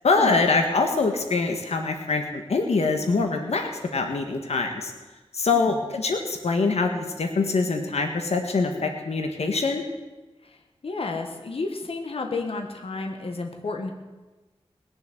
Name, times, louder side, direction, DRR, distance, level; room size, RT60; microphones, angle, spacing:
voice 1, 0.0-4.9 5.3-9.8, left 3 dB, 90° left, 4 dB, 1.5 m, -24 dB
voice 2, 10.8-13.9, left 3 dB, 65° left, 3 dB, 1.5 m, -31 dB
20.0 x 7.1 x 7.7 m, 1.2 s
wide cardioid pair, 90°, 11 cm